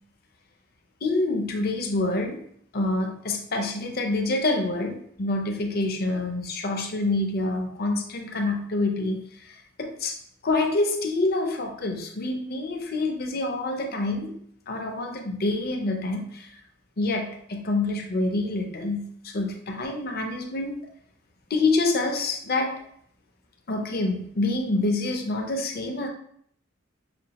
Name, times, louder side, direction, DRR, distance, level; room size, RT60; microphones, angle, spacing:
voice 1, 1.0-2.4 2.7-9.5 9.8-10.2 10.4-14.4 14.7-16.5 17.0-20.8 21.5-22.7 23.7-26.1, left 2 dB, 50° left, 3 dB, 0.6 m, -27 dB
5.9 x 2.3 x 2.9 m, 0.65 s
head